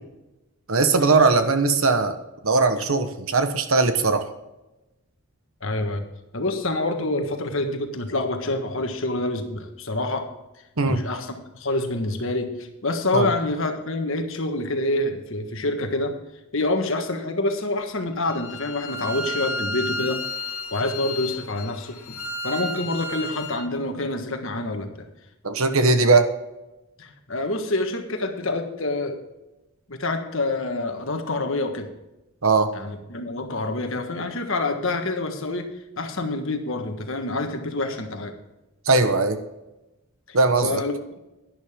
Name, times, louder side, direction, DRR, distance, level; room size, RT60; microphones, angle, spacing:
voice 1, 0.7-2.2 2.4-4.3 10.8-11.0 13.1-13.3 25.4-26.3 32.4-32.7 38.9-39.4 40.3-40.8, right 3 dB, 65° right, 9 dB, 1.1 m, -19 dB
voice 2, 5.6-6.0 6.3-10.3 10.9-16.2 16.5-20.2 20.7-22.1 22.4-24.9 27.0-29.2 29.9-31.9 32.7-35.7 36.0-38.3 40.3-41.2, left 2 dB, 60° left, 5 dB, 1.5 m, -27 dB
Bowed string instrument, 18.2-23.6, left 1 dB, 80° left, 1.6 m, -32 dB
11.5 x 11.0 x 3.6 m, 0.98 s
head